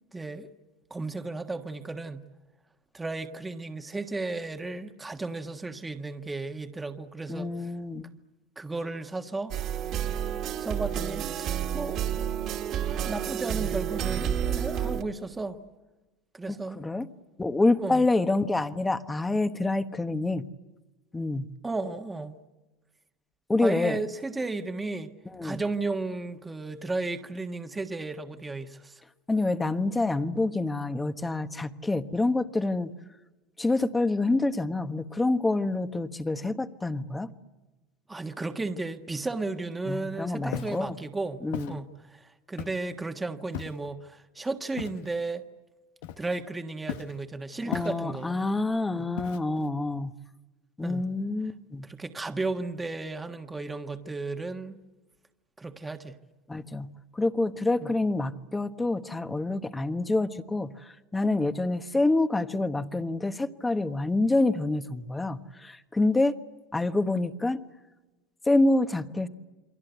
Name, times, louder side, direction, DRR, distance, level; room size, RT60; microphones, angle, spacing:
voice 1, 0.1-0.5 0.9-2.2 2.9-7.7 8.5-9.5 10.6-12.0 13.0-15.6 16.3-16.8 17.8-18.1 21.6-22.3 23.6-25.1 25.4-29.0 38.1-41.4 41.7-45.4 46.2-48.4 48.9-49.1 50.8-51.0 51.8-54.8 55.6-56.1 57.8-57.9, right 3 dB, 10° right, 1.5 m, -34 dB
voice 2, 7.3-8.1 16.5-17.1 17.4-20.5 21.1-21.5 23.5-24.0 25.3-25.6 29.3-32.9 33.6-37.3 39.9-41.0 41.4-41.8 47.6-50.1 50.8-51.8 56.5-56.9 57.1-66.4 66.7-67.6 68.5-69.3, left 2 dB, 10° left, 1.3 m, -27 dB
sound 1, 9.5-15.0, right 9 dB, 50° right, 2.2 m, -30 dB
Walk footsteps, 40.5-40.8 41.5-41.8 42.6-42.9 43.5-43.9 44.8-45.1 46.0-46.5 46.9-47.2 47.7-48.2 49.2-49.7, left 12 dB, 80° left, 1.1 m, -37 dB
28.5 x 22.5 x 8.2 m
supercardioid pair, 115°, 0 cm